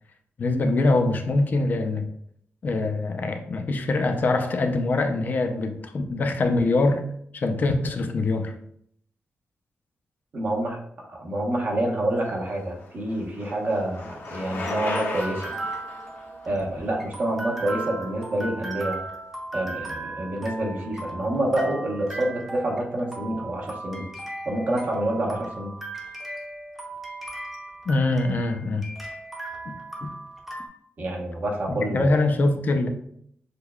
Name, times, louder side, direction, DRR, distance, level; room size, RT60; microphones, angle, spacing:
voice 1, 0.4-2.1 2.6-7.0 7.3-8.5 27.9-28.9 29.7-29.8 30.0-30.1 31.7-32.9, left 2 dB, 45° left, 6 dB, 0.4 m, -23 dB
voice 2, 10.3-15.5 16.5-19.0 19.5-24.1 24.5-25.7 31.0-32.2, right 1 dB, 45° right, -1 dB, 0.9 m, -27 dB
Bicycle, 12.3-18.2, left 2 dB, 70° left, 0.8 m, -35 dB
sound 1, 14.0-30.7, right 2 dB, 5° right, 0.7 m, -37 dB
6.4 x 2.2 x 2.2 m, 0.68 s
wide cardioid pair, 135°, 4 cm